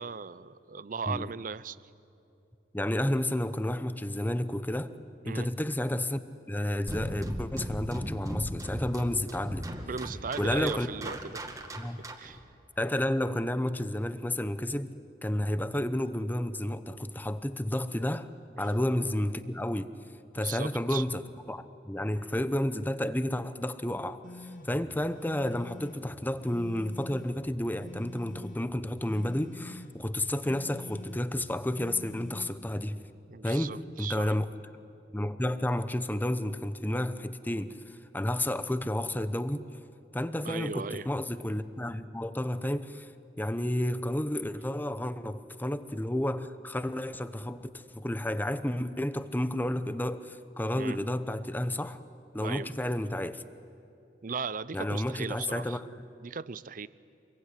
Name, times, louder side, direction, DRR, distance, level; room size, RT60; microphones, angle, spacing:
voice 1, 0.0-1.8 5.2-5.5 9.8-11.4 12.2-12.4 20.3-21.0 33.3-34.3 40.4-41.1 50.7-51.0 52.4-52.7 54.2-55.8 56.2-56.9, right 5 dB, 50° right, 0.6 m, -37 dB
voice 2, 2.7-4.9 5.2-6.2 6.5-9.7 10.4-10.9 11.8-12.0 12.8-14.9 15.2-18.3 18.6-19.9 20.3-21.2 21.5-33.0 33.4-34.5 35.1-39.7 40.1-43.1 43.4-52.0 52.3-53.4 54.7-55.9, left 1 dB, 10° left, 0.9 m, -31 dB
sound 1, 6.9-12.4, equal, 20° right, 2.0 m, -37 dB
sound 2, 24.2-32.8, left 2 dB, 50° left, 1.7 m, -47 dB
27.0 x 22.5 x 9.9 m
head